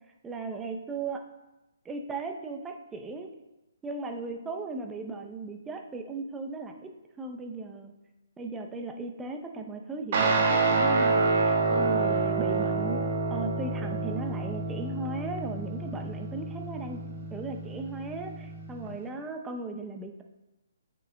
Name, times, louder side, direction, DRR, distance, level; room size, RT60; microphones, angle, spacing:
voice 1, 0.2-1.2 1.8-3.3 3.8-6.9 7.2-7.9 8.4-17.1 17.3-20.2, right 3 dB, 10° right, 4 dB, 0.7 m, -37 dB
Guitar, 10.1-18.9, right 3 dB, 45° right, 1.3 m, -28 dB
9.1 x 6.2 x 2.3 m, 0.99 s
figure-of-eight pair, 135°, 0 cm